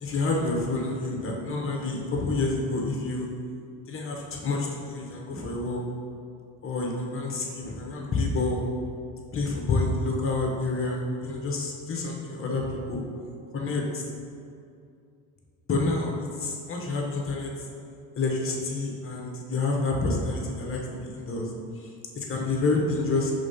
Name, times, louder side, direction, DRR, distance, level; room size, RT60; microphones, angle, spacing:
voice 1, 0.0-3.3 3.9-5.8 6.6-8.6 9.3-13.0 13.5-14.0 15.7-16.1 16.4-17.5 18.2-21.5 21.8-21.9 22.1-23.3, left 3 dB, 30° left, 0 dB, 1.1 m, -28 dB
5.1 x 3.7 x 5.5 m, 2.4 s
cardioid pair, 115°, 42 cm